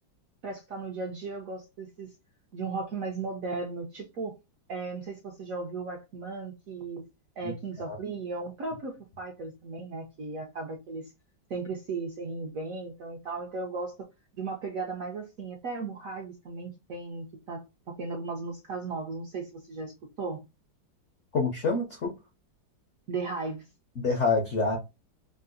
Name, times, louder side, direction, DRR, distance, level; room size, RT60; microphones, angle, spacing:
voice 1, 0.4-2.1 2.5-4.3 4.7-7.0 7.4-11.1 11.5-14.1 14.3-20.4 23.1-23.7, right 3 dB, 65° right, 0.8 m, -36 dB
voice 2, 21.3-22.1 24.0-24.8, left 4 dB, 65° left, 0.7 m, -26 dB
3.7 x 2.4 x 2.5 m
omnidirectional pair, 2.1 m